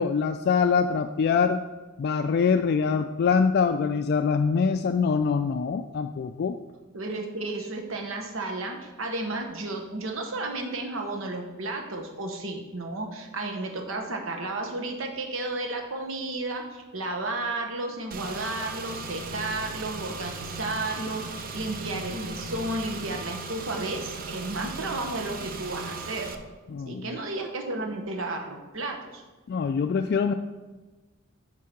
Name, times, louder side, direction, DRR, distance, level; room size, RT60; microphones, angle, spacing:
voice 1, 0.0-1.6 2.0-6.6 26.7-27.1 29.5-30.3, left 5 dB, 50° left, 7 dB, 0.3 m, -24 dB
voice 2, 6.9-26.3 26.9-29.2, right 2 dB, 70° right, 2 dB, 1.1 m, -33 dB
Car / Engine, 18.1-26.4, right 3 dB, 45° right, 0.6 m, -37 dB
9.4 x 3.7 x 5.9 m, 1.2 s
head